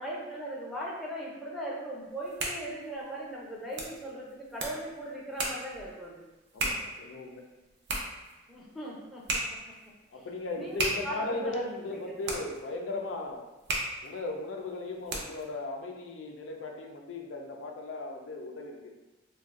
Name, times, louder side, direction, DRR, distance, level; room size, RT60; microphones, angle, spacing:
voice 1, 0.0-6.2 8.5-9.4 10.1-10.2 10.6-11.6 12.1-12.4, right 1 dB, ahead, -5 dB, 0.6 m, -39 dB
sound 1, 2.1-15.5, right 2 dB, 60° right, 0.5 m, -37 dB
voice 2, 6.5-7.5 10.1-13.5 14.0-18.9, left 2 dB, 80° left, 1 dB, 0.4 m, -37 dB
2.5 x 2.2 x 3.5 m, 1.1 s
head